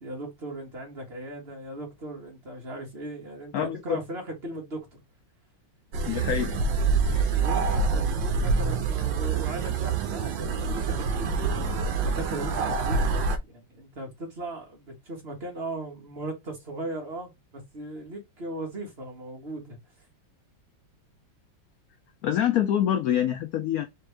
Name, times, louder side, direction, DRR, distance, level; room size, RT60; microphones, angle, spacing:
voice 1, 0.0-5.0 7.3-13.2 13.5-19.8, right 1 dB, 30° right, 1.9 m, -38 dB
voice 2, 3.5-4.0 6.0-6.5 7.1-7.4 22.2-23.8, left 10 dB, 85° left, 0.8 m, -26 dB
sound 1, 5.9-13.4, right 4 dB, 70° right, 1.4 m, -26 dB
4.3 x 3.2 x 3.3 m
omnidirectional pair, 2.2 m